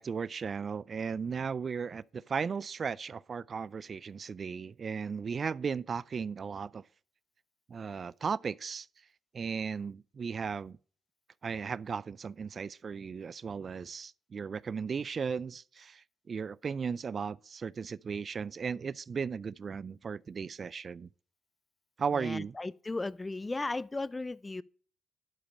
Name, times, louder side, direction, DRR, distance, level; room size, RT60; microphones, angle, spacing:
voice 1, 0.0-6.8 7.7-8.9 9.3-10.8 11.4-21.1 22.0-22.6, right 6 dB, 50° right, 0.3 m, -36 dB
voice 2, 22.1-24.6, left 2 dB, 25° left, 0.4 m, -36 dB
11.5 x 5.1 x 5.2 m
supercardioid pair, 65°, 0 cm